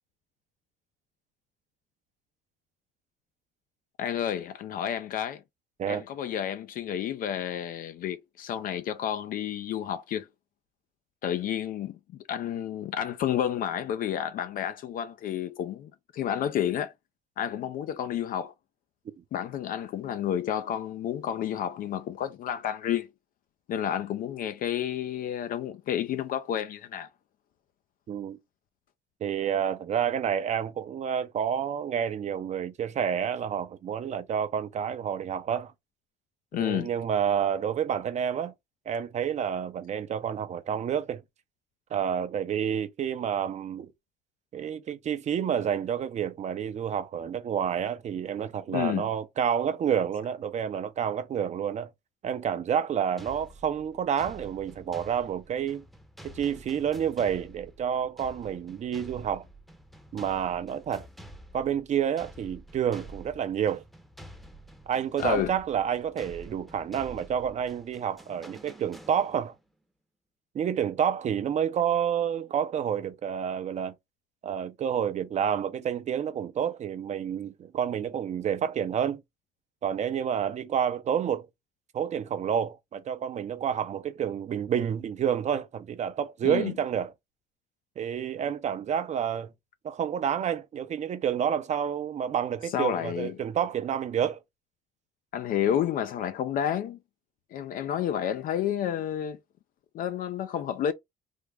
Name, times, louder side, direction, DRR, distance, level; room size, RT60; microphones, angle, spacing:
voice 1, 4.0-5.4 5.9-10.3 11.2-12.0 12.3-16.9 17.4-18.5 19.3-23.1 23.7-27.1 36.5-36.9 48.7-49.1 65.2-65.5 86.4-86.7 92.7-93.3 95.3-97.0 97.5-99.4 99.9-100.9, left 10 dB, 55° left, 0.4 m, -30 dB
voice 2, 28.1-28.4 29.2-35.7 36.6-38.5 38.9-41.2 41.9-43.9 44.5-51.9 52.2-55.8 56.2-59.4 60.1-61.1 61.5-63.8 64.9-69.5 70.5-73.9 74.4-79.2 79.8-81.5 81.9-87.1 88.0-89.5 89.8-94.4, right 8 dB, 45° right, 0.6 m, -29 dB
sound 1, 53.2-69.6, right 1 dB, ahead, 0.7 m, -49 dB
3.5 x 2.0 x 3.4 m
cardioid pair, 110°, 17 cm